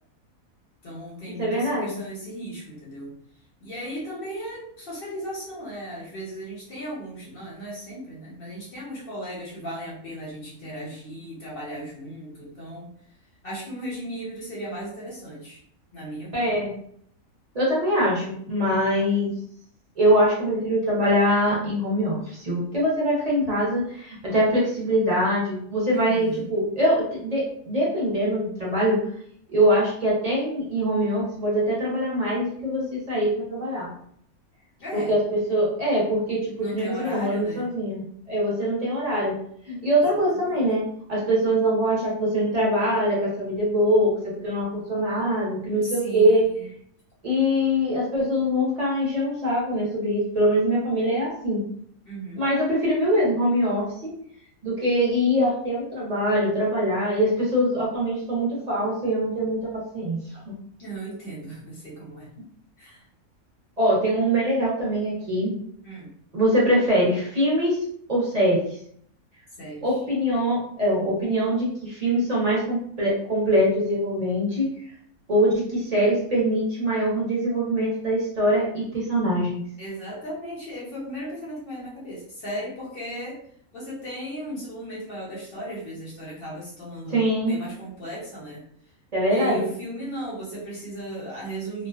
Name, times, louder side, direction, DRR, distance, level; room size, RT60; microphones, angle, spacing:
voice 1, 0.8-3.1 3.6-12.9 13.4-15.6 15.9-16.6 25.9-26.5 34.8-35.2 36.6-37.7 40.3-40.6 45.8-46.7 52.1-52.4 60.8-62.3 62.8-63.0 65.8-66.1 69.6-70.0 79.8-83.4 83.7-88.6 89.3-91.9, right 1 dB, 50° left, -5 dB, 0.7 m, -36 dB
voice 2, 1.4-2.0 16.3-16.7 17.5-19.3 20.0-29.0 29.5-33.9 34.9-39.4 39.7-46.5 47.2-51.6 52.4-54.1 54.6-60.5 63.8-65.5 66.3-67.8 68.1-68.7 69.8-74.7 75.3-79.6 87.1-87.5 89.1-89.6, equal, 40° right, -5 dB, 0.6 m, -23 dB
2.4 x 2.2 x 2.3 m, 0.64 s
omnidirectional pair, 1.5 m